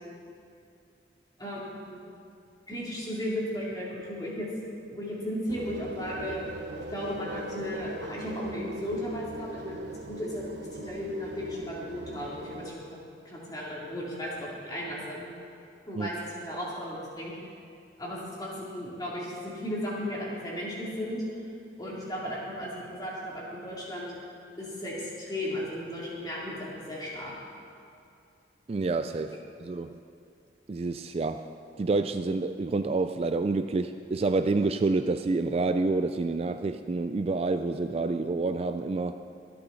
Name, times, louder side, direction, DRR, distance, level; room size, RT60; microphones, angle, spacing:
voice 1, 1.4-2.0 2.7-4.5 4.9-6.4 6.8-13.0 13.2-15.3 15.9-17.4 18.0-21.2 21.8-24.1 24.6-27.3, equal, 20° left, -6 dB, 3.0 m, -35 dB
sound 1, 5.5-12.7, right 1 dB, 75° right, 0.8 m, -41 dB
voice 2, 28.7-30.0 30.7-31.5 31.8-39.1, right 3 dB, 35° right, 9 dB, 0.3 m, -28 dB
24.0 x 8.6 x 4.1 m, 2.5 s
head